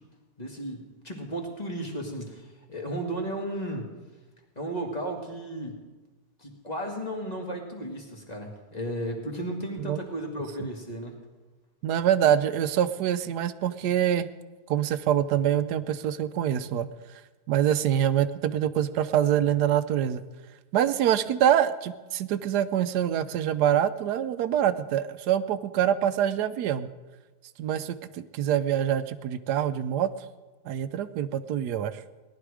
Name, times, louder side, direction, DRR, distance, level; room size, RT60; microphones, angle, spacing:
voice 1, 0.4-3.9 4.6-5.9 6.4-11.1, right 1 dB, 25° left, 1 dB, 2.0 m, -34 dB
voice 2, 11.8-14.3 14.7-16.9 17.5-20.2 20.7-26.9 27.6-30.1 30.7-32.0, right 10 dB, 90° right, 13 dB, 1.2 m, -25 dB
18.0 x 11.0 x 4.9 m, 1.2 s
omnidirectional pair, 1.7 m